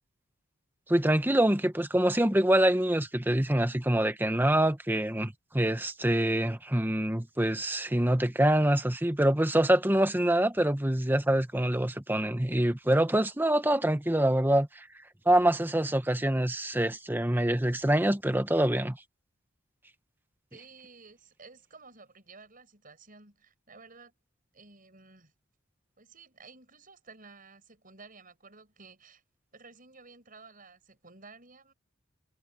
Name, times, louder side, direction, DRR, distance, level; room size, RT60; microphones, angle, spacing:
voice 1, 0.9-14.9 15.3-19.0, right 1 dB, 10° right, 1.1 m, -25 dB
voice 2, 20.5-24.1 24.5-25.3 26.0-29.2 29.5-31.7, right 4 dB, 45° right, 6.9 m, -53 dB
head